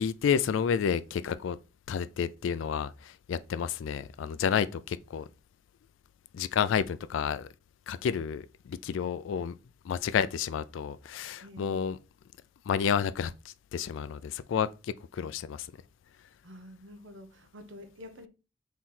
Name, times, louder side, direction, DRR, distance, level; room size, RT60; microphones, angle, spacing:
voice 1, 0.0-1.6 1.9-5.3 6.3-7.5 7.9-9.5 9.8-12.0 12.7-15.7, left 7 dB, 85° left, 0.3 m, -30 dB
voice 2, 11.4-11.8 16.4-18.3, left 1 dB, 80° right, 0.8 m, -48 dB
3.8 x 3.0 x 4.2 m
head